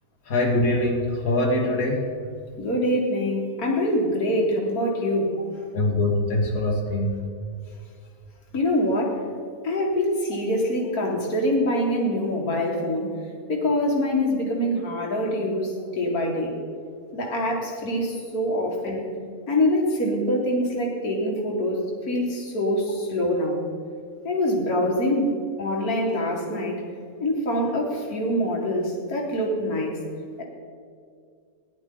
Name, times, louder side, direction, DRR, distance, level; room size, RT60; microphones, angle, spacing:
voice 1, 0.3-2.1 5.7-7.3, left 1 dB, 70° left, -2 dB, 2.3 m, -23 dB
voice 2, 2.6-5.4 8.5-9.2 9.6-13.1 13.5-16.5 17.1-19.1 19.5-23.6 24.2-25.3 25.6-26.8 27.2-30.0 30.4-30.5, left 1 dB, 85° left, -1 dB, 2.3 m, -24 dB
18.0 x 11.0 x 3.8 m, 2.2 s
omnidirectional pair, 1.5 m